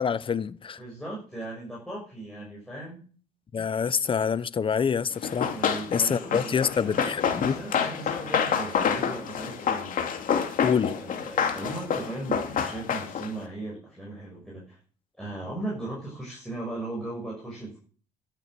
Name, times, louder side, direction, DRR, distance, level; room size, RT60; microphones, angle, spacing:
voice 1, 0.0-0.8 3.5-5.5 5.9-7.6 10.6-11.0, left 6 dB, 30° left, 0.8 m, -26 dB
voice 2, 0.8-3.1 5.5-7.1 7.4-10.2 11.0-14.8 15.2-17.8, right 2 dB, 5° left, 6.1 m, -37 dB
Run, 5.2-13.4, left 7 dB, 55° left, 2.6 m, -28 dB
13.0 x 8.5 x 7.8 m
cardioid pair, 110°, 17 cm